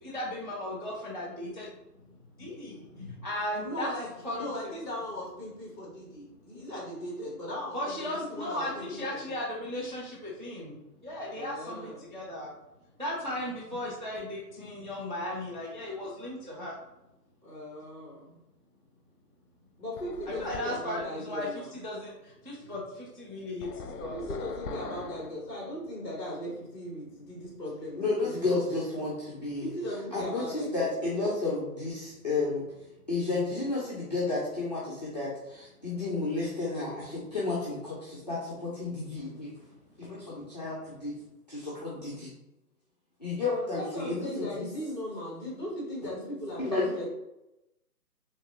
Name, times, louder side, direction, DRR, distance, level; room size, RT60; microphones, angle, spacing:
voice 1, 0.0-1.7 2.4-3.9 4.2-4.4 7.7-10.7 11.0-12.5 13.0-16.7 20.4-21.5 21.8-22.1 22.4-24.1, left 1 dB, 35° right, -6 dB, 0.4 m, -36 dB
voice 2, 3.6-9.4 11.3-12.1 17.4-18.4 19.8-21.8 24.1-29.0 29.6-30.9 43.7-47.1, left 1 dB, 10° left, -5 dB, 1.2 m, -38 dB
sound 1, 20.0-21.0 23.6-25.4, left 4 dB, 70° left, 0.6 m, -41 dB
voice 3, 28.0-29.7 30.1-32.6 33.1-39.5 40.0-41.1 41.5-42.3 43.2-44.5 46.6-46.9, left 3 dB, 30° left, -8 dB, 0.5 m, -32 dB
3.3 x 3.2 x 2.8 m, 0.90 s
hypercardioid pair, 150°, 48 cm